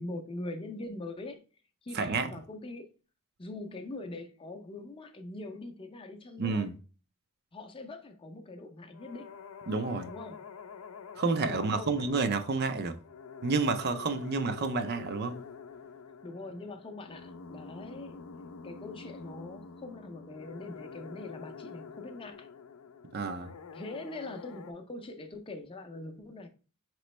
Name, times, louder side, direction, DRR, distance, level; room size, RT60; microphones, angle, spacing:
voice 1, 0.0-1.4 1.8-2.9 3.4-6.7 7.5-9.3 10.0-10.5 11.4-12.2 16.2-18.2 18.6-22.5 23.7-26.5, left 2 dB, 25° left, 0.5 m, -42 dB
voice 2, 1.9-2.3 6.4-6.7 9.7-10.1 11.2-13.0 13.4-15.4 23.1-23.5, right 4 dB, 50° right, 0.4 m, -30 dB
Quirky digital sound, 8.9-24.7, left 5 dB, 80° left, 0.5 m, -47 dB
5.0 x 3.0 x 3.1 m
head